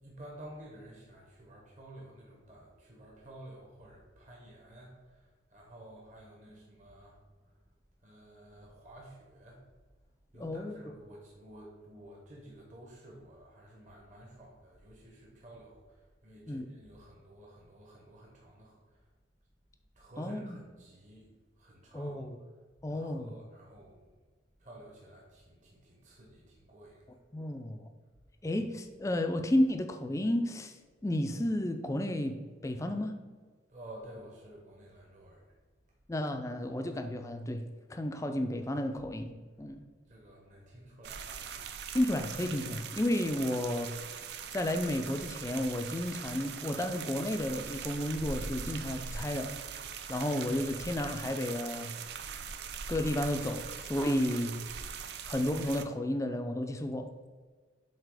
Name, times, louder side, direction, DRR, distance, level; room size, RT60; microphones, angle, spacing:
voice 1, 0.0-7.6 8.0-9.7 10.3-19.1 19.9-22.2 22.9-24.1 24.6-27.5 33.7-35.6 39.6-39.7 40.1-41.7, right 1 dB, 40° right, -2 dB, 1.0 m, -52 dB
voice 2, 10.4-10.8 16.5-16.7 20.2-20.6 21.9-22.4 22.8-23.3 27.3-27.8 28.4-30.8 31.0-33.1 36.1-37.6 37.9-39.3 39.6-39.8 41.9-43.9 44.5-49.5 50.1-51.9 52.9-54.6 55.3-57.1, left 1 dB, 15° left, 6 dB, 0.4 m, -32 dB
sound 1, 41.0-55.8, right 6 dB, 60° right, 0.4 m, -41 dB
7.5 x 2.9 x 4.8 m, 1.4 s
head